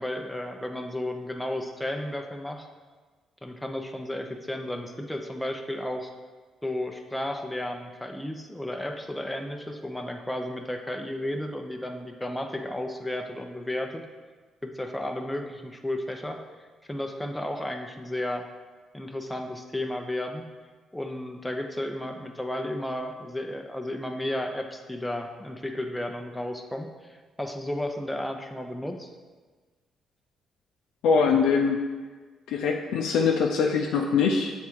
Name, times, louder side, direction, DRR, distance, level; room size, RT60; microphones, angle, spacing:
voice 1, 0.0-2.7 3.4-6.1 6.6-14.0 14.6-16.4 16.9-18.4 18.9-20.4 20.9-29.1, left 1 dB, 5° left, 4 dB, 0.6 m, -33 dB
voice 2, 31.0-31.8 32.5-34.5, left 5 dB, 85° left, 0 dB, 0.5 m, -23 dB
7.4 x 3.6 x 4.5 m, 1.4 s
cardioid pair, 90°, 0 cm